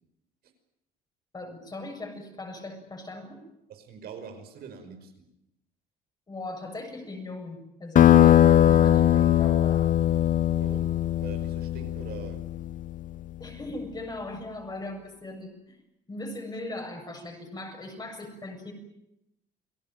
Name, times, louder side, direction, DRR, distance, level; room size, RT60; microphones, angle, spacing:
voice 1, 1.3-3.4 6.3-9.9 13.4-15.8 16.1-18.7, left 2 dB, 25° left, 3 dB, 7.4 m, -39 dB
voice 2, 3.7-5.1 10.5-12.5, right 7 dB, 65° right, 6 dB, 5.5 m, -43 dB
sound 1, 8.0-13.1, left 12 dB, 50° left, 0.9 m, -20 dB
28.5 x 18.0 x 9.1 m, 0.85 s
cardioid pair, 110°, 17 cm